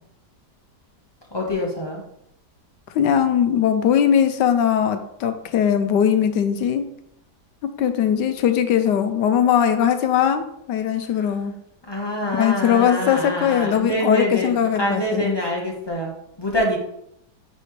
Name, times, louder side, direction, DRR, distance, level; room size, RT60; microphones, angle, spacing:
voice 1, 1.3-2.0 11.1-11.3 11.9-16.1 16.4-16.8, left 1 dB, 15° left, -2 dB, 1.3 m, -25 dB
voice 2, 2.9-6.9 7.6-11.5 12.3-15.3, left 8 dB, 80° left, 9 dB, 1.3 m, -20 dB
9.7 x 4.3 x 3.3 m, 0.75 s
omnidirectional pair, 1.9 m